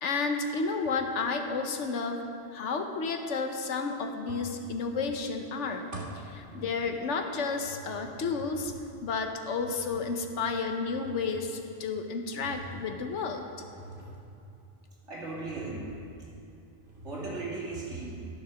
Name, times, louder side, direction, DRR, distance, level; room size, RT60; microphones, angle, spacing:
voice 1, 0.0-2.2 2.5-8.7 9.0-13.4, left 4 dB, 85° left, 5 dB, 1.2 m, -32 dB
sound 1, 0.8-1.3 4.3-5.2 5.4-7.1 7.4-14.7 15.2-16.0 16.3-16.4 16.8-17.7, right 1 dB, 45° right, 1.8 m, -47 dB
voice 2, 15.1-15.9 17.0-18.2, right 3 dB, 80° right, -6 dB, 2.8 m, -37 dB
12.5 x 6.6 x 6.2 m, 2.6 s
omnidirectional pair, 1.2 m